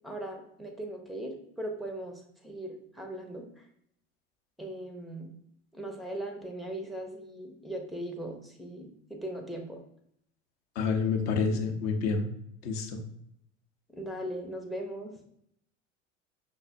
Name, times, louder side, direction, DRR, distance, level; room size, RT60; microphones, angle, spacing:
voice 1, 0.0-3.6 4.6-5.3 5.7-9.8 13.9-15.1, right 1 dB, ahead, 3 dB, 0.4 m, -39 dB
voice 2, 10.8-12.3 12.6-13.0, left 5 dB, 55° left, 4 dB, 0.7 m, -28 dB
5.3 x 2.0 x 2.5 m, 0.71 s
figure-of-eight pair, 75°, 36 cm